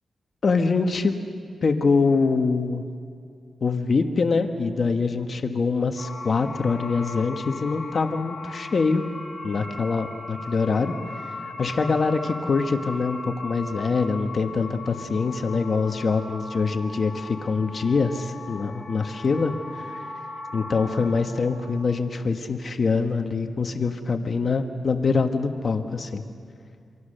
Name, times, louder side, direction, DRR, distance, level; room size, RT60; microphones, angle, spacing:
voice 1, 0.4-1.2 1.6-2.8 3.6-9.0 9.4-10.9 11.2-18.1 18.5-20.1 20.5-26.2, left 4 dB, 55° left, 6 dB, 1.3 m, -24 dB
sound 1, 6.0-21.9, left 3 dB, 35° left, 5.7 m, -38 dB
27.0 x 25.5 x 6.7 m, 2.3 s
cardioid pair, 90°, 0 cm